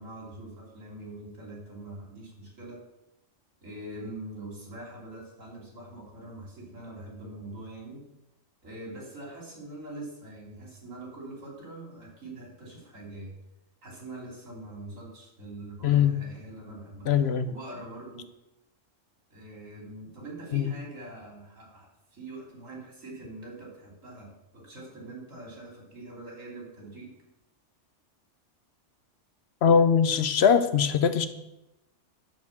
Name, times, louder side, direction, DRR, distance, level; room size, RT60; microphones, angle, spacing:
voice 1, 0.0-2.8 3.6-8.1 8.6-13.3 13.8-17.1 17.4-18.3 19.3-27.1, right 2 dB, 85° right, -2 dB, 3.3 m, -43 dB
voice 2, 17.1-17.5 20.5-20.7 29.6-31.3, left 7 dB, 60° left, 11 dB, 0.9 m, -21 dB
11.0 x 4.5 x 7.1 m, 0.90 s
omnidirectional pair, 1.3 m